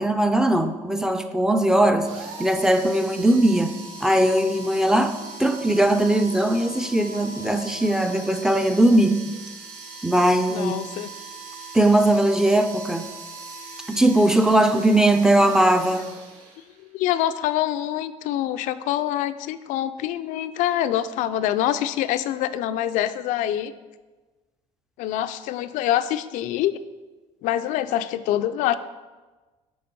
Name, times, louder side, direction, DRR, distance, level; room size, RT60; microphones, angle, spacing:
voice 1, 0.0-2.1 2.4-3.7 4.0-9.2 10.0-10.7 11.7-13.1 13.9-16.1, right 1 dB, 5° right, 8 dB, 0.4 m, -19 dB
sound 1, 2.0-16.9, right 3 dB, 80° right, 1.5 m, -40 dB
voice 2, 10.5-11.1 16.9-23.7 25.0-26.8 27.4-28.7, left 12 dB, 70° left, 11 dB, 0.4 m, -25 dB
8.7 x 3.4 x 5.3 m, 1.2 s
cardioid pair, 125°, 14 cm